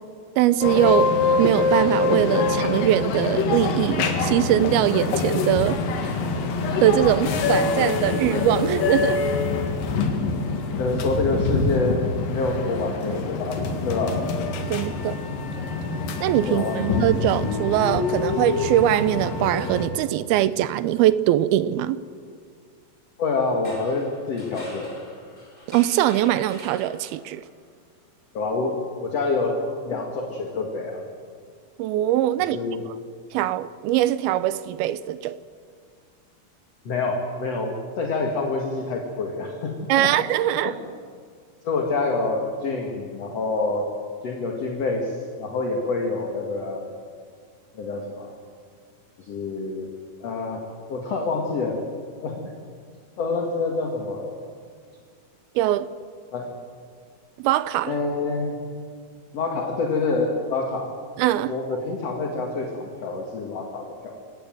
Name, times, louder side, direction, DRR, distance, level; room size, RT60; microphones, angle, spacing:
voice 1, 0.4-6.2 6.8-9.2 14.7-15.2 16.2-22.0 25.7-27.4 31.8-32.6 33.3-35.4 39.9-40.7 55.6-55.9 57.4-57.9 61.2-61.5, right 13 dB, 80° right, 15 dB, 2.6 m, -22 dB
sound 1, 0.6-19.9, left 4 dB, 65° left, 3.3 m, -25 dB
voice 2, 10.8-14.2 16.5-16.8 23.2-25.0 28.3-31.0 32.5-32.8 36.8-40.1 40.6-40.7 41.6-43.9 44.2-46.9 47.7-48.3 49.2-49.9 50.2-50.6 50.9-51.8 52.2-52.5 53.2-54.4 56.3-56.5 57.9-58.6 59.3-60.9 61.5-64.1, left 3 dB, 45° left, 1 dB, 2.7 m, -27 dB
sound 2, 23.5-27.4, equal, 10° left, 5.3 m, -45 dB
27.0 x 17.0 x 7.8 m, 2.1 s
omnidirectional pair, 4.5 m